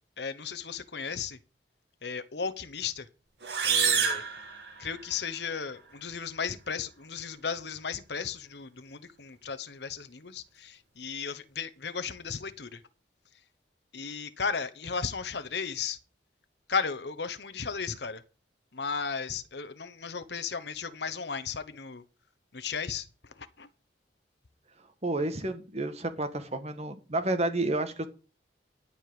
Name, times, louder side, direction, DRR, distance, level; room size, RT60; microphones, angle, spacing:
voice 1, 0.2-1.4 2.0-3.1 3.6-4.2 4.8-12.8 13.9-16.0 16.7-18.2 18.7-22.0 22.5-23.1 23.4-23.7, left 6 dB, 70° left, 1.1 m, -35 dB
sound 1, 3.4-5.3, right 6 dB, 70° right, 2.2 m, -28 dB
voice 2, 25.0-28.1, right 2 dB, 40° right, 1.6 m, -30 dB
12.5 x 5.0 x 7.8 m
head